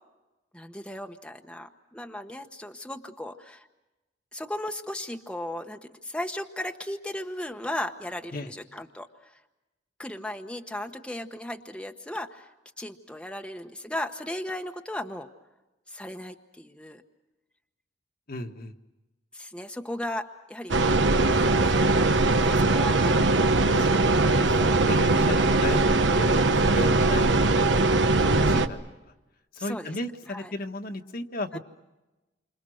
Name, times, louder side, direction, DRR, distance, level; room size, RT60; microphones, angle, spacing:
voice 1, 0.5-3.7 4.3-9.3 10.0-12.5 12.8-15.3 15.9-17.0 19.3-20.9 21.3-21.9 22.4-23.2 23.8-24.5 29.6-29.9 30.3-30.5 31.5-31.6, left 1 dB, 5° left, 4 dB, 1.1 m, -36 dB
voice 2, 18.3-18.7 22.9-27.8 28.2-28.8 29.5-31.6, left 2 dB, 50° left, 5 dB, 1.5 m, -35 dB
sound 1, 20.7-28.7, right 2 dB, 75° right, 1.2 m, -21 dB
29.0 x 26.0 x 6.4 m, 1.0 s
head